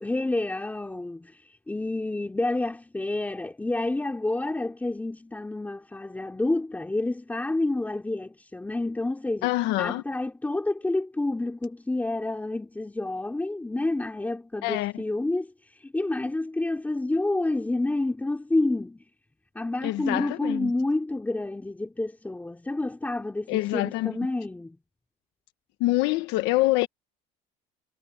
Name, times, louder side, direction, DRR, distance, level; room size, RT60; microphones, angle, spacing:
voice 1, 0.0-9.5 9.8-19.0 19.6-24.8, left 2 dB, 10° left, 3.7 m, -29 dB
voice 2, 9.4-10.0 14.6-14.9 19.8-20.7 23.5-24.2 25.8-26.9, left 18 dB, 75° left, 1.4 m, -25 dB
cardioid pair, 130°, 18 cm